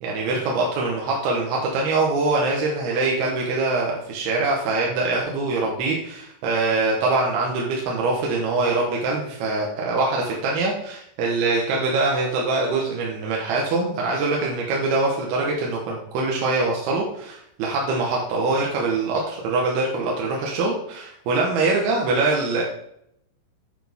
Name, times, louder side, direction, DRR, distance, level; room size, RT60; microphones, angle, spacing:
voice 1, 0.0-22.6, right 3 dB, 65° right, -2 dB, 2.8 m, -23 dB
10.0 x 8.7 x 3.6 m, 0.75 s
omnidirectional pair, 5.8 m